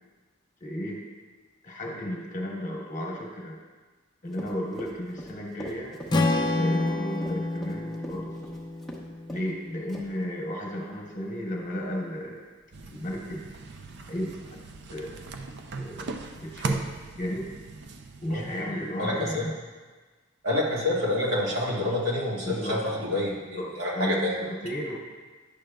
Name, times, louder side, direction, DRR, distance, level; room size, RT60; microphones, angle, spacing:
voice 1, 0.6-1.0 1.6-3.6 4.2-6.0 6.4-8.3 9.3-12.4 12.9-13.4 14.1-14.6 14.9-15.2 15.8-17.5 18.2-19.5 22.5-22.8 23.6-25.0, equal, 40° left, -1 dB, 1.1 m, -34 dB
Run, 4.3-9.0 9.3-9.5 9.9-10.2, equal, ahead, 0.8 m, -41 dB
Strum, 6.1-10.4, left 2 dB, 20° left, 0.4 m, -29 dB
sound 1, 12.7-19.2, right 3 dB, 55° right, 0.5 m, -37 dB
voice 2, 19.0-19.4 20.4-24.3, left 1 dB, 75° right, -5 dB, 1.7 m, -27 dB
10.5 x 6.4 x 2.3 m, 1.3 s
head